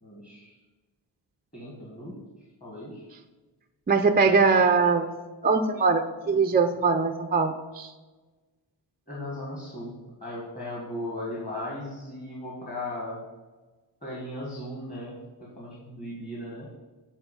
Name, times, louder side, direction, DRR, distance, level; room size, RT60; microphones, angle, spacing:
voice 1, 0.0-0.6 1.5-2.2 2.6-3.0 4.1-4.5 9.1-9.9 10.2-13.2 14.0-16.8, left 1 dB, 20° left, -5 dB, 1.5 m, -37 dB
voice 2, 3.9-5.1 5.4-7.9, right 4 dB, 25° right, 5 dB, 0.3 m, -22 dB
8.2 x 4.0 x 5.1 m, 1.2 s
wide cardioid pair, 160°, 43 cm